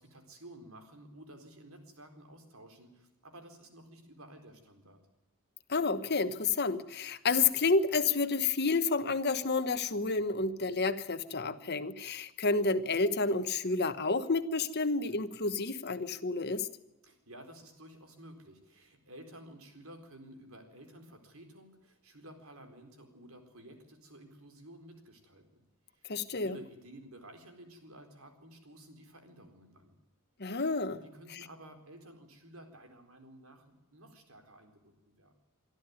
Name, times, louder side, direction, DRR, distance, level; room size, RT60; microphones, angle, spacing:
voice 1, 0.0-5.0 17.0-25.6 25.9-30.0 31.0-35.3, right 1 dB, 75° right, 6 dB, 4.3 m, -53 dB
voice 2, 5.7-16.7 26.1-26.6 30.4-31.0 31.3-31.4, left 4 dB, 50° left, 11 dB, 1.2 m, -30 dB
24.5 x 13.0 x 9.6 m, 0.98 s
head